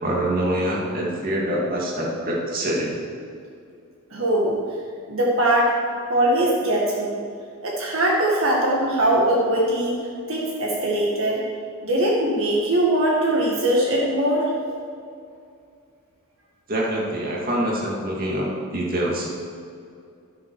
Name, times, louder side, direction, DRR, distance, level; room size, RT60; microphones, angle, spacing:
voice 1, 0.0-3.0 16.7-19.3, right 1 dB, 40° right, -3 dB, 2.3 m, -25 dB
voice 2, 4.1-4.6 5.1-5.7 6.1-7.2 7.6-10.0 10.3-11.4 11.8-14.5, right 1 dB, 65° right, -3 dB, 1.8 m, -21 dB
12.0 x 11.5 x 4.8 m, 2.4 s
head